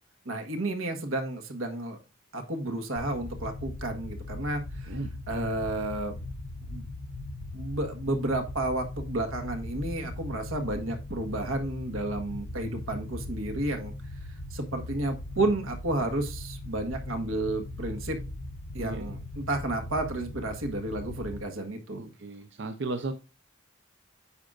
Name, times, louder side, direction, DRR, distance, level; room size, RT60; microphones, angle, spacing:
voice 1, 0.2-2.0 2.3-5.0 5.3-6.1 6.7-6.8 7.5-13.9 14.5-18.2 18.7-22.1, right 2 dB, 90° right, 4 dB, 1.5 m, -31 dB
sound 1, 3.0-21.4, left 2 dB, 85° left, 0.7 m, -39 dB
voice 2, 22.0-23.1, right 3 dB, 60° right, 7 dB, 0.6 m, -35 dB
9.6 x 6.3 x 2.5 m, 0.31 s
head